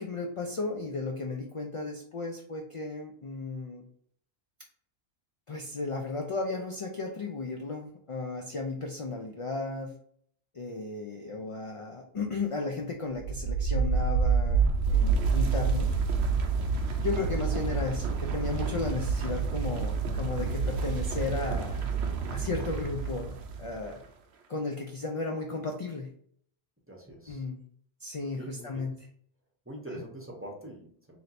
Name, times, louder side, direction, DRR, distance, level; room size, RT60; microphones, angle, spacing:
voice 1, 0.0-3.8 5.5-10.0 10.5-15.9 17.0-21.9 22.3-24.0 24.5-26.1 27.3-27.6 28.0-28.9, left 3 dB, 50° left, 2 dB, 0.3 m, -34 dB
sound 1, 13.1-23.9, right 5 dB, 75° right, 0.9 m, -28 dB
voice 2, 26.9-27.5 28.2-28.9 29.6-31.2, right 1 dB, 15° right, -1 dB, 0.7 m, -44 dB
3.2 x 2.8 x 4.0 m, 0.62 s
omnidirectional pair, 1.1 m